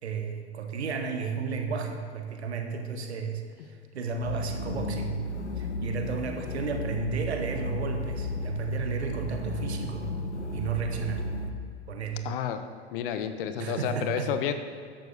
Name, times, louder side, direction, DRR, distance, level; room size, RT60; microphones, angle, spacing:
voice 1, 0.0-5.2 5.6-10.1 10.5-11.2 11.9-12.3 13.6-14.3, right 5 dB, 75° right, 5 dB, 1.5 m, -33 dB
sound 1, 4.2-11.5, left 1 dB, 85° left, 1.0 m, -33 dB
voice 2, 12.2-12.6 12.9-14.5, left 8 dB, 55° left, 9 dB, 1.0 m, -30 dB
13.5 x 11.0 x 3.5 m, 2.3 s
figure-of-eight pair, 90°, 33 cm